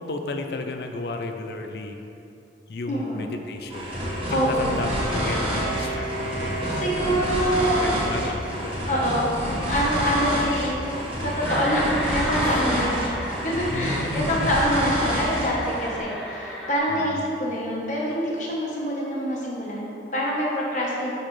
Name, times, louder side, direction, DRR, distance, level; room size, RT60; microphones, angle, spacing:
voice 1, 0.0-2.0 2.7-4.0 4.3-6.9 7.7-9.4 12.5-12.6 13.7-14.5 16.9-17.2, left 3 dB, 65° left, 5 dB, 0.4 m, -33 dB
voice 2, 2.9-3.2 4.3-4.7 6.8-7.8 8.9-9.3 9.7-10.8 11.2-13.1 13.4-21.1, equal, 45° left, -4 dB, 1.1 m, -25 dB
sound 1, 3.7-15.9, equal, 30° right, 1.2 m, -28 dB
Wind instrument woodwind instrument, 3.8-9.6, right 2 dB, 45° right, 0.6 m, -35 dB
sound 2, 11.4-16.8, equal, ahead, 0.5 m, -33 dB
6.4 x 5.7 x 3.2 m, 2.9 s
head